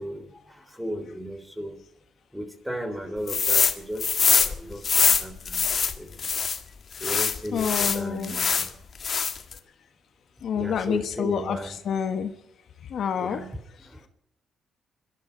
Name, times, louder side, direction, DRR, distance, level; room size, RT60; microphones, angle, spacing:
voice 1, 0.0-1.8 2.3-5.7 6.0-6.3 7.0-8.8 10.5-11.8 13.2-14.1, equal, 5° right, 8 dB, 3.4 m, -36 dB
sound 1, 3.3-3.7 4.0-6.6 7.0-8.7 9.0-9.5, left 6 dB, 45° left, 1.6 m, -23 dB
voice 2, 7.5-8.3 10.4-11.6 11.9-12.3 12.9-13.4, left 7 dB, 65° left, 8 dB, 1.4 m, -27 dB
25.0 x 12.5 x 4.6 m, 0.81 s
cardioid pair, 90°, 0 cm